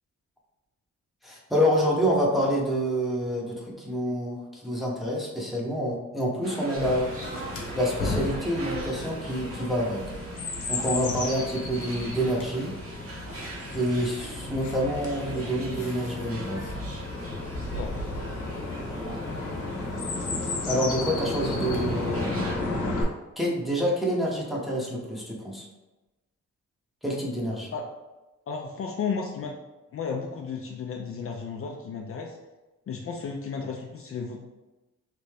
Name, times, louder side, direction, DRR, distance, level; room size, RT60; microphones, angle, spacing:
voice 1, 1.2-7.1 7.7-10.1 10.7-12.7 13.7-16.6 20.6-22.4 23.4-25.7 27.0-27.7, equal, ahead, -3 dB, 0.8 m, -27 dB
sound 1, 6.4-22.6, right 2 dB, 50° right, 0.8 m, -42 dB
Chirp tweet, 6.8-23.0, left 2 dB, 80° left, 0.9 m, -33 dB
voice 2, 28.5-29.6 29.9-32.4 32.9-34.4, left 5 dB, 50° left, 1 dB, 0.4 m, -33 dB
3.3 x 2.6 x 3.2 m, 1.1 s
cardioid pair, 110°, 30 cm